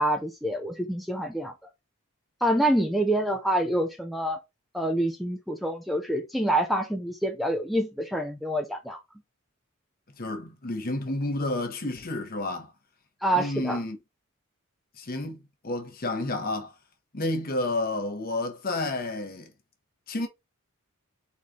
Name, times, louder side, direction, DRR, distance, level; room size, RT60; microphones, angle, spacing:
voice 1, 0.0-1.5 2.4-4.4 4.7-9.0 13.2-13.8, right 1 dB, ahead, 0.5 m, -26 dB
voice 2, 10.2-12.7 13.3-14.0 15.0-16.7 17.1-19.5 20.1-20.3, left 2 dB, 40° left, 1.1 m, -30 dB
4.2 x 3.2 x 3.6 m
head